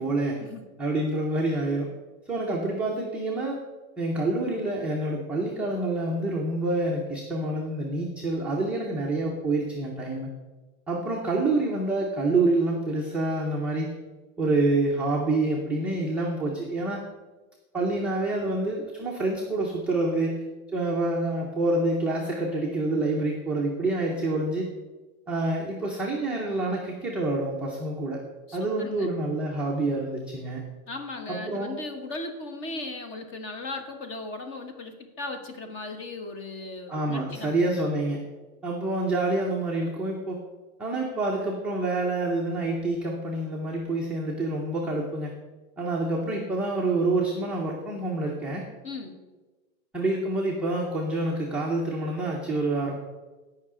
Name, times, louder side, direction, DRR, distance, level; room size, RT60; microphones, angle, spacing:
voice 1, 0.0-0.4 0.8-1.9 2.3-3.6 4.0-10.3 10.9-13.9 14.4-17.0 17.7-20.4 20.7-24.7 25.3-28.2 28.5-30.7 31.3-31.8 36.9-38.2 38.6-40.4 40.8-45.3 45.8-48.7 49.9-53.0, right 2 dB, 5° right, -5 dB, 0.4 m, -27 dB
voice 2, 28.5-29.1 30.9-37.6 48.8-49.2, left 2 dB, 30° left, 5 dB, 1.1 m, -37 dB
15.5 x 5.6 x 3.6 m, 1.2 s
supercardioid pair, 155°, 43 cm